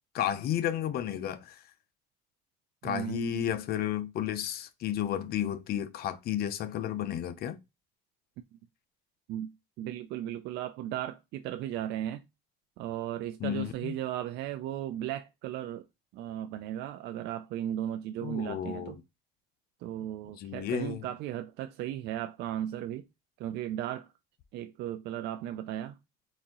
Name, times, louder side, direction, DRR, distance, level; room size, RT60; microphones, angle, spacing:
voice 1, 0.1-1.6 2.8-7.6 13.4-13.9 18.2-19.0 20.4-21.0, left 10 dB, 65° left, 0.7 m, -32 dB
voice 2, 2.8-3.5 8.5-8.6 9.3-9.5 9.8-12.2 12.8-15.9 16.1-19.0 19.8-23.1 23.4-24.1 24.5-26.0, right 12 dB, 85° right, 0.4 m, -36 dB
4.2 x 2.7 x 3.7 m
cardioid pair, 110°, 17 cm